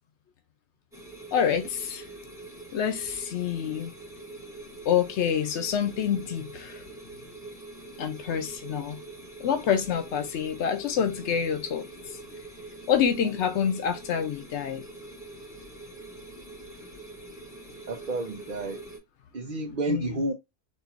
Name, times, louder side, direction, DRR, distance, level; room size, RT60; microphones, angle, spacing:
sound 1, 0.9-19.0, right 2 dB, 5° right, 1.5 m, -44 dB
voice 1, 1.3-2.0 2.7-3.9 4.8-6.8 8.0-9.0 9.4-12.2 12.9-14.8 19.9-20.0, left 8 dB, 85° left, 0.9 m, -27 dB
voice 2, 17.9-18.8 19.3-20.3, right 2 dB, 50° right, 0.8 m, -30 dB
4.3 x 2.7 x 2.5 m
omnidirectional pair, 1.1 m